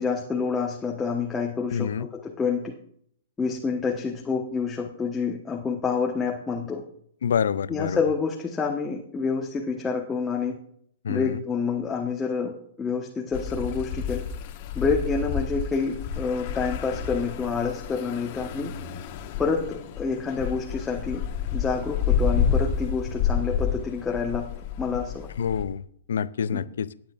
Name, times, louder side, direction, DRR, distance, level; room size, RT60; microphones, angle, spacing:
voice 1, 0.0-2.7 3.4-6.8 7.7-10.5 11.1-12.5 12.8-14.2 14.7-18.7 19.4-21.2 21.5-24.5 24.8-25.3 26.5-26.6, left 5 dB, 15° left, -1 dB, 1.2 m, -28 dB
voice 2, 1.7-2.1 7.2-8.0 11.0-11.4 25.4-25.8 26.1-26.9, left 7 dB, 75° left, 17 dB, 0.4 m, -27 dB
sound 1, 13.3-25.6, left 7 dB, 50° left, 1.4 m, -29 dB
17.5 x 9.1 x 2.5 m, 0.65 s
hypercardioid pair, 130°, 0 cm